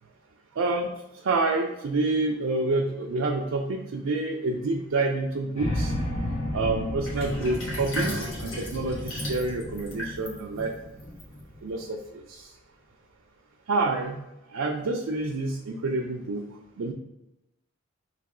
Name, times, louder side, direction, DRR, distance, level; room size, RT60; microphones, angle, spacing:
voice 1, 0.6-0.9 1.2-5.9 6.5-10.7 11.6-12.0 12.3-12.4 13.7-14.2 14.5-16.4 16.8-16.9, right 3 dB, 85° right, 0 dB, 0.5 m, -28 dB
sound 1, 5.6-11.7, left 1 dB, 40° left, 1.2 m, -33 dB
Sink (filling or washing), 7.0-11.8, equal, 80° left, 1.2 m, -35 dB
3.4 x 2.9 x 4.8 m, 0.90 s
head